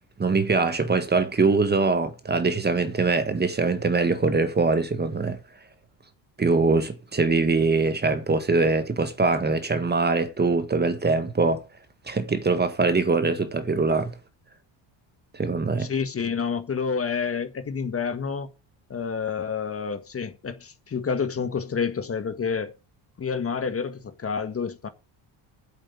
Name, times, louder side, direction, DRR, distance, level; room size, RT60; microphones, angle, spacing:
voice 1, 0.2-5.4 6.4-11.6 12.0-14.1 15.3-15.9, right 3 dB, 20° right, 1.6 m, -23 dB
voice 2, 15.8-18.5 18.9-22.7 23.2-24.9, left 6 dB, 30° left, 1.6 m, -29 dB
8.6 x 7.6 x 8.4 m
cardioid pair, 110°, 46 cm